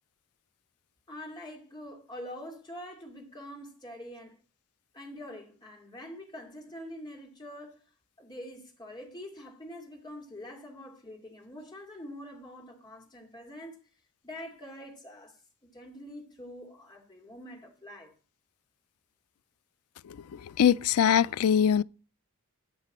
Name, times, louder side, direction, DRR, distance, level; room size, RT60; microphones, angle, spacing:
voice 1, 1.1-4.4 4.9-7.8 8.2-13.8 14.2-18.1, left 1 dB, 20° left, 2.6 m, -45 dB
voice 2, 20.6-21.8, left 8 dB, 90° left, 0.4 m, -22 dB
13.0 x 6.1 x 4.2 m
head